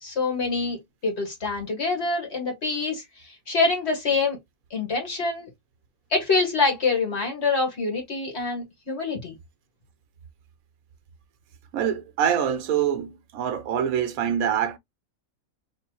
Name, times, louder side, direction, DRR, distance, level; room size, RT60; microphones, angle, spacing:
voice 1, 0.0-4.4 4.7-5.5 6.1-9.3, left 3 dB, 50° left, 1.9 m, -26 dB
voice 2, 11.7-14.8, right 9 dB, 80° right, 1.1 m, -25 dB
3.9 x 2.7 x 2.8 m
omnidirectional pair, 1.5 m